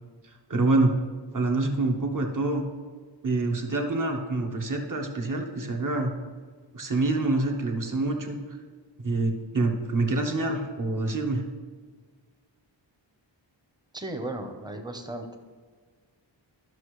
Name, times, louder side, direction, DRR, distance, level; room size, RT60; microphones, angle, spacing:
voice 1, 0.2-0.9 1.3-2.6 3.2-6.1 6.7-8.6 9.0-11.4, right 2 dB, 40° right, 3 dB, 1.1 m, -26 dB
voice 2, 13.9-15.4, right 1 dB, 10° right, 5 dB, 0.8 m, -35 dB
12.0 x 6.1 x 3.2 m, 1.5 s
wide cardioid pair, 70°, 47 cm